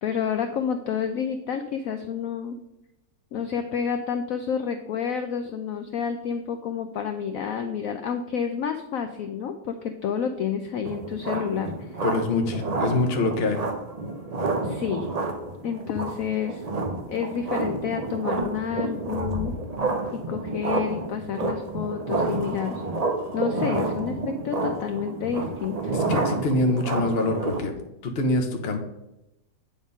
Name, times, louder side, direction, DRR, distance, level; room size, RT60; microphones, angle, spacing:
voice 1, 0.0-2.6 3.3-12.0 14.6-15.1 15.6-16.6 17.1-19.6 20.1-22.8 23.3-25.9, left 7 dB, 75° left, 7 dB, 0.7 m, -29 dB
sound 1, 10.8-27.6, right 3 dB, 75° right, 0.3 m, -29 dB
voice 2, 12.0-13.7 25.9-27.7 28.0-28.8, left 2 dB, 45° left, 5 dB, 0.9 m, -25 dB
8.6 x 3.6 x 5.3 m, 0.90 s
omnidirectional pair, 2.0 m